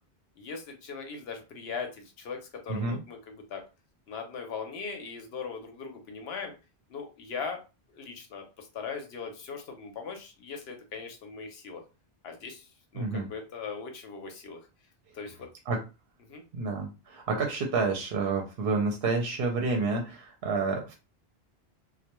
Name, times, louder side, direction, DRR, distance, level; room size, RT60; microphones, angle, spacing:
voice 1, 0.4-3.6 4.1-6.5 6.9-7.6 7.9-11.8 12.2-14.7 15.1-15.5 16.2-16.4, left 5 dB, 75° left, 4 dB, 0.9 m, -39 dB
voice 2, 12.9-13.3 15.7-15.8 16.5-20.9, right 4 dB, 70° right, 2 dB, 0.8 m, -29 dB
2.2 x 2.2 x 2.9 m, 0.30 s
omnidirectional pair, 1.1 m